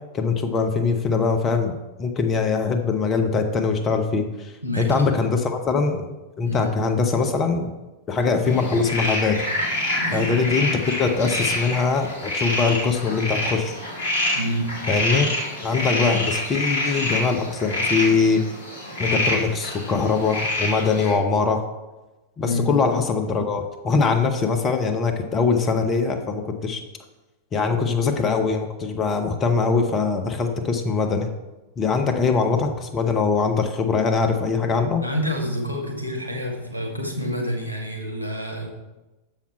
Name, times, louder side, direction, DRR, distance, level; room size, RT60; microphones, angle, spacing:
voice 1, 0.1-6.1 6.4-7.7 8.1-9.4 10.1-13.8 14.9-15.3 15.6-18.4 19.0-21.6 22.4-26.8 27.5-31.3 31.8-35.0, left 4 dB, 25° left, 5 dB, 0.7 m, -22 dB
voice 2, 4.6-5.0 6.4-6.7 10.0-10.3 14.3-14.7 22.4-22.7 35.0-38.7, equal, 90° left, 2 dB, 1.3 m, -28 dB
sound 1, 8.5-21.1, left 1 dB, 60° left, 2.1 m, -27 dB
7.1 x 5.7 x 4.5 m, 1.1 s
figure-of-eight pair, 90°, 0 cm